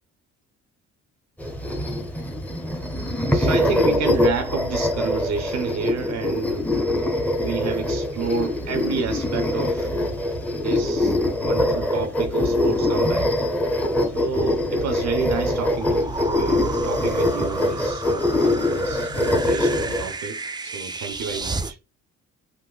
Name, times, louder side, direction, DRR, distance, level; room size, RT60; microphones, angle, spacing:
sound 1, 1.4-20.1, left 1 dB, 5° left, 0.9 m, -23 dB
voice 1, 3.3-6.7 7.4-9.9 10.6-13.3 14.1-21.8, right 6 dB, 65° right, 0.6 m, -30 dB
sound 2, 14.3-21.7, right 3 dB, 15° right, 0.4 m, -33 dB
3.7 x 2.6 x 2.2 m
cardioid pair, 90°, 30 cm